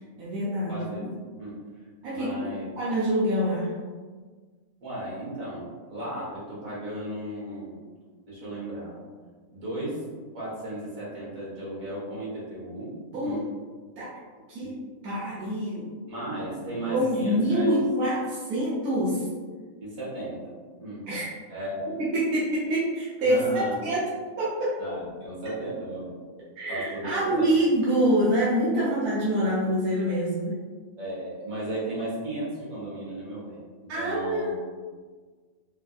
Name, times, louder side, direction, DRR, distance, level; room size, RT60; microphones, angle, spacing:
voice 1, 0.2-1.1 2.0-2.3 2.8-3.7 13.1-13.4 14.0-14.2 14.5-14.8 15.0-16.1 16.9-19.2 21.0-21.3 22.0-24.1 24.4-24.8 26.6-30.6 33.9-34.5, right 1 dB, 90° right, -8 dB, 1.3 m, -26 dB
voice 2, 0.7-1.0 1.4-1.6 2.1-2.7 4.8-7.8 8.3-9.0 9.5-10.1 10.3-12.9 13.2-13.4 14.6-14.8 16.1-17.7 19.8-21.1 21.5-22.0 23.2-23.8 24.8-26.2 26.7-27.6 31.0-34.5, right 1 dB, 65° right, -8 dB, 1.7 m, -35 dB
4.3 x 2.4 x 2.3 m, 1.5 s
omnidirectional pair, 1.5 m